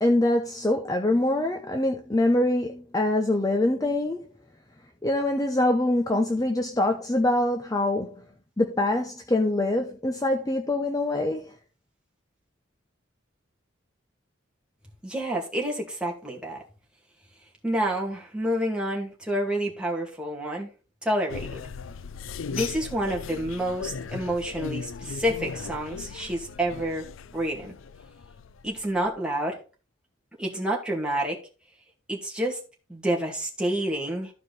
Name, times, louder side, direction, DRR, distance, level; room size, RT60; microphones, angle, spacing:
voice 1, 0.0-4.2 5.0-8.2 8.6-11.5, left 1 dB, 20° left, 0.7 m, -24 dB
voice 2, 15.0-16.6 17.6-20.7 21.0-21.6 22.5-27.1 27.3-27.7 28.6-29.6 30.4-31.4 32.1-32.6 32.9-34.3, right 1 dB, 5° right, 2.3 m, -28 dB
sound 1, 21.3-29.1, left 5 dB, 75° left, 0.5 m, -38 dB
14.0 x 4.9 x 4.1 m
head